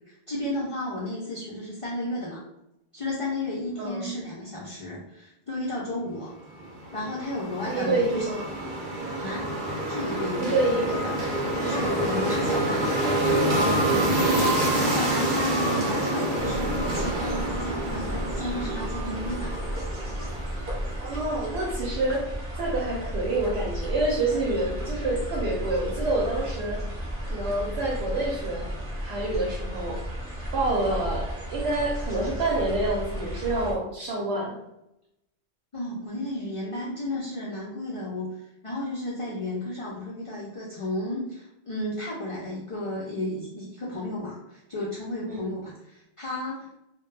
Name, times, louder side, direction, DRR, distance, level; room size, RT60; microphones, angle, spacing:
voice 1, 0.1-2.4 2.9-6.3 6.9-8.3 9.2-9.5 9.8-10.6 11.0-11.1 11.6-12.8 14.5-19.5 35.7-46.8, left 1 dB, 60° left, -6 dB, 0.3 m, -33 dB
voice 2, 3.8-4.1 7.6-8.4 10.4-11.0 13.5-14.1 21.0-22.3 22.6-26.8 27.3-28.7 29.0-30.0 30.5-34.5 45.3-45.4, right 2 dB, 75° right, -3 dB, 0.9 m, -27 dB
sound 1, 6.6-20.9, right 1 dB, 55° right, 0.7 m, -27 dB
sound 2, 11.5-17.5, equal, 5° left, 0.9 m, -35 dB
sound 3, 16.4-33.7, equal, 15° right, 0.6 m, -33 dB
2.2 x 2.1 x 3.1 m, 0.86 s
omnidirectional pair, 1.2 m